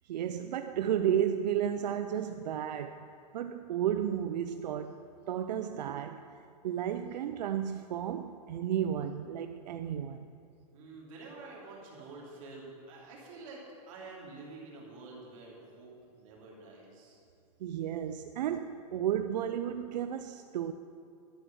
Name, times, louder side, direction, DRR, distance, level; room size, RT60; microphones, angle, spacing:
voice 1, 0.1-3.1 3.3-6.3 6.6-10.3 17.6-20.7, right 9 dB, 90° right, 0.5 m, -33 dB
voice 2, 10.7-17.2, right 3 dB, 50° right, 3.1 m, -48 dB
11.5 x 7.9 x 6.2 m
supercardioid pair, 160°, 21 cm